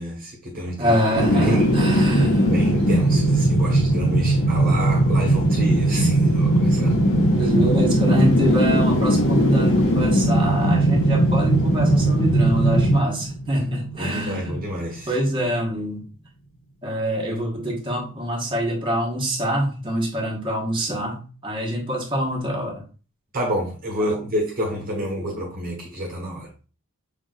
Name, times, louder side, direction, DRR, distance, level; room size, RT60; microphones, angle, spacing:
voice 1, 0.0-1.0 1.3-1.8 2.5-7.0 14.0-15.2 23.3-26.5, equal, 40° right, 1.3 m, -29 dB
voice 2, 0.8-2.5 4.0-4.2 6.8-7.1 7.3-14.6 15.1-16.0 16.8-22.8 24.0-24.2 24.9-25.3, equal, 20° right, 1.4 m, -25 dB
sound 1, 1.2-14.2 14.6-14.7, right 1 dB, 60° left, 1.3 m, -19 dB
6.0 x 3.6 x 2.4 m
head